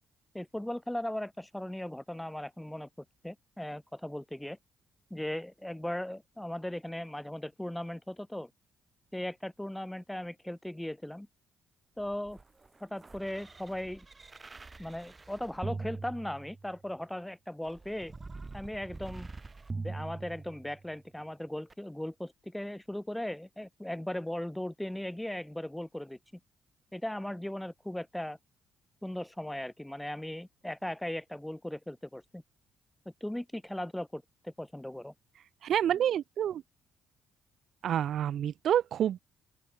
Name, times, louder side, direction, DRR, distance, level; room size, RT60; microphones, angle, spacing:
voice 1, 0.3-2.9 3.2-4.6 5.1-8.5 9.1-11.3 12.0-12.4 12.8-14.1 14.8-18.1 18.5-19.3 19.7-26.2 26.9-28.4 29.0-32.4 33.2-35.1, left 1 dB, 5° left, 3.4 m, -38 dB
sound 1, 12.0-16.9 17.6-20.9 21.7-21.8, right 3 dB, 25° right, 3.9 m, -43 dB
voice 2, 35.6-36.6 37.8-39.2, right 10 dB, 65° right, 0.3 m, -28 dB
open air
cardioid pair, 90°, 0 cm